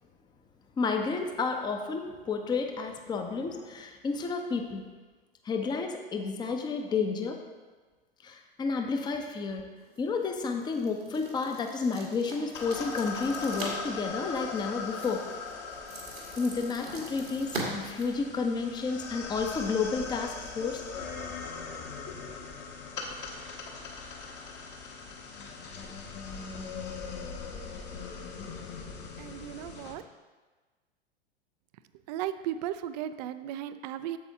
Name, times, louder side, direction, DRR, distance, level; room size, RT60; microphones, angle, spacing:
voice 1, 0.8-4.8 5.4-7.4 8.2-9.7 10.0-15.3 16.4-20.8 22.1-22.2, left 4 dB, 15° left, 4 dB, 0.6 m, -31 dB
sound 1, 9.8-18.8, right 2 dB, 90° right, 1.8 m, -43 dB
sound 2, 12.5-29.9, left 5 dB, 35° left, 1.1 m, -40 dB
voice 2, 29.2-30.0 32.1-34.2, right 11 dB, 45° right, 12 dB, 0.4 m, -35 dB
8.4 x 7.0 x 2.7 m, 1.3 s
figure-of-eight pair, 90°, 30 cm